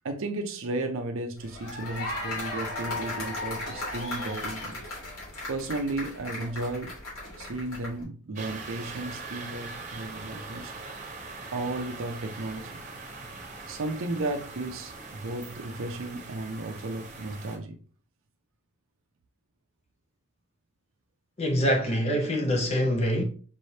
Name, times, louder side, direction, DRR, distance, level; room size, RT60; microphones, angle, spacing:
voice 1, 0.0-4.8 5.5-6.9 7.4-10.7 11.5-12.8 13.7-17.8 21.7-22.4, right 2 dB, 65° right, 0.5 m, -34 dB
sound 1, 1.4-8.0, left 2 dB, 80° left, 2.3 m, -36 dB
sound 2, 8.3-17.6, right 3 dB, 35° right, 0.9 m, -42 dB
voice 2, 21.4-23.2, equal, 30° left, 0.5 m, -25 dB
5.3 x 3.2 x 2.7 m
head